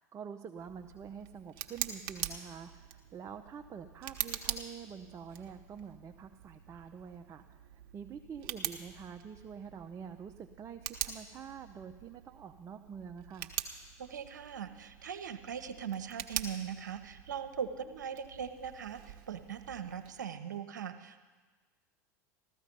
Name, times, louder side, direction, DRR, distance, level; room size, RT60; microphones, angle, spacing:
voice 1, 0.0-13.5, right 7 dB, 30° right, 6 dB, 0.7 m, -47 dB
Tick, 0.6-20.2, right 10 dB, 55° right, 1.1 m, -44 dB
voice 2, 14.0-21.2, right 7 dB, 85° right, 9 dB, 0.9 m, -40 dB
14.5 x 14.0 x 5.3 m, 1.3 s
hypercardioid pair, 90°, 10 cm